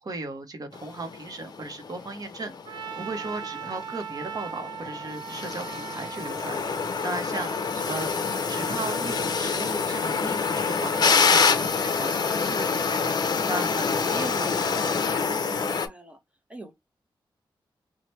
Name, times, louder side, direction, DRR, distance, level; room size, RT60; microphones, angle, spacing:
voice 1, 0.0-13.1 13.5-14.8, right 2 dB, 45° right, 0.8 m, -37 dB
sound 1, 0.7-15.9, left 5 dB, 55° left, 0.5 m, -27 dB
Trumpet, 2.6-9.2, right 8 dB, 65° right, 0.4 m, -39 dB
voice 2, 15.2-16.2 16.5-16.7, right 2 dB, 15° right, 0.8 m, -44 dB
3.0 x 2.1 x 3.0 m
wide cardioid pair, 125°, 8 cm